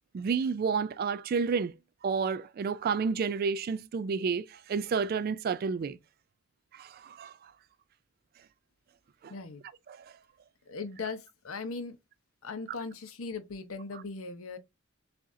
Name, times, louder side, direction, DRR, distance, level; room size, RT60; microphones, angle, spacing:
voice 1, 0.1-1.7 2.0-6.0 6.7-7.5 9.2-9.3 9.9-10.1, right 5 dB, 45° right, 0.3 m, -30 dB
voice 2, 9.3-9.6 10.7-12.0 12.4-14.6, left 4 dB, 90° left, 0.8 m, -39 dB
6.8 x 2.5 x 2.6 m
head